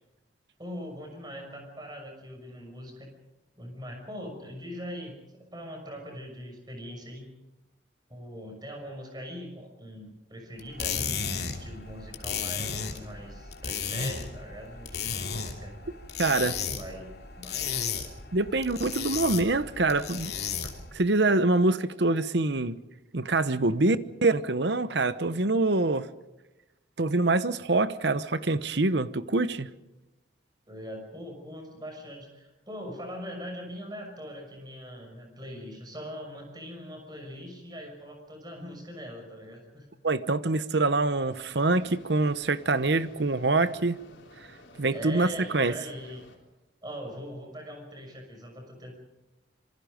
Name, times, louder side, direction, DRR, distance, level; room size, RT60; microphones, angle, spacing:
voice 1, 0.6-3.1 3.6-5.2 5.5-7.3 8.1-15.8 16.4-17.9 30.7-39.9 44.9-46.3 46.8-48.9, equal, 20° right, 6.1 m, -41 dB
sound 1, 10.6-20.9, left 6 dB, 55° left, 2.9 m, -34 dB
voice 2, 16.2-16.6 18.3-20.3 20.9-22.8 23.1-26.1 27.0-29.7 40.0-44.0 44.8-45.3 45.5-45.7, right 2 dB, 65° right, 1.0 m, -25 dB
Mechanisms, 41.3-46.4, left 1 dB, 85° left, 4.3 m, -53 dB
26.0 x 24.5 x 5.2 m
head